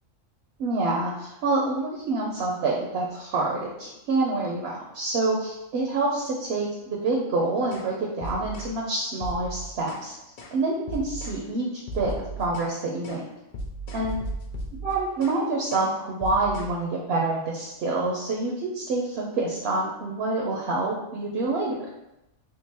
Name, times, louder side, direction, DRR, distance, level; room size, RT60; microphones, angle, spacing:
voice 1, 0.6-10.1 10.5-12.1 12.4-13.2 13.9-14.2 14.8-21.8, right 3 dB, 60° right, -2 dB, 0.7 m, -27 dB
sound 1, 7.7-7.9 8.2-8.7 9.2-10.1 10.4-10.6 10.9-11.4 11.9-12.7 13.0-13.2 13.5-15.4 15.7-15.9 16.2-16.7, right 1 dB, 80° left, 0.4 m, -36 dB
3.7 x 2.6 x 2.9 m, 0.89 s
omnidirectional pair, 1.4 m